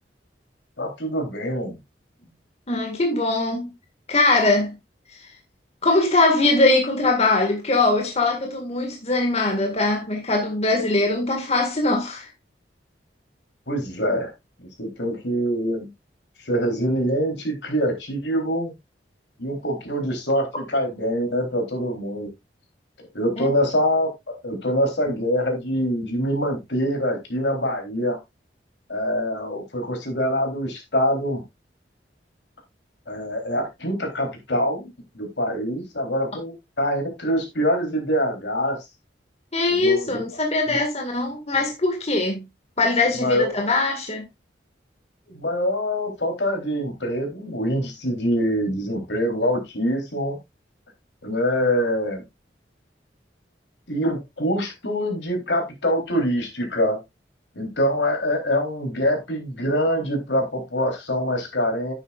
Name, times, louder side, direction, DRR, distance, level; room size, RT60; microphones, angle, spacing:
voice 1, 0.8-1.8 13.7-14.3 14.8-15.9 16.4-18.7 19.4-22.3 23.1-28.2 28.9-31.4 33.1-38.8 39.7-40.2 40.7-40.8 43.2-43.5 45.3-50.4 51.2-52.2 53.9-57.0 57.5-61.9, equal, 75° left, 3.5 m, -24 dB
voice 2, 2.7-3.7 4.1-4.7 5.1-5.2 5.8-12.3 23.4-23.5 39.5-42.4 42.8-44.2, left 2 dB, 35° left, 1.9 m, -21 dB
10.0 x 9.1 x 2.4 m
head